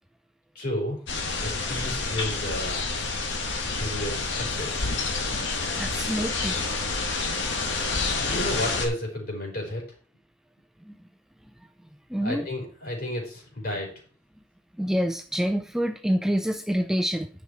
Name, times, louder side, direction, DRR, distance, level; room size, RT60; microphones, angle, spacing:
voice 1, 0.5-1.0 1.4-2.8 3.7-4.8 8.1-9.8 12.2-13.9, left 1 dB, 50° left, 0 dB, 4.4 m, -32 dB
sound 1, 1.1-8.9, left 3 dB, 65° left, 2.0 m, -28 dB
voice 2, 5.8-7.0 7.8-8.2 10.8-10.9 12.1-12.5 14.8-17.3, equal, 5° right, 6 dB, 0.4 m, -28 dB
9.9 x 6.5 x 4.5 m, 0.42 s
head